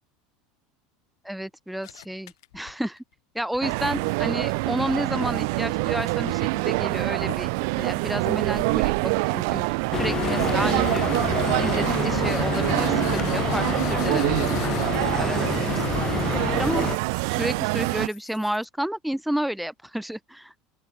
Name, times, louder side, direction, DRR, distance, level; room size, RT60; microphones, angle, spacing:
voice 1, 1.2-3.0 3.3-7.5 7.8-9.7 9.9-11.0 11.5-16.9 17.3-20.5, right 1 dB, ahead, 1.2 m, -31 dB
sound 1, 1.8-3.0 3.4-6.0 6.3-7.0 7.3-7.9 8.3-8.8 9.2-9.7 10.1-18.7, left 18 dB, 85° left, 8.0 m, -46 dB
sound 2, 3.6-18.1, right 30 dB, 65° right, 1.0 m, -25 dB
sound 3, 9.9-17.0, left 8 dB, 25° left, 1.1 m, -28 dB
open air
supercardioid pair, 160°, 2 cm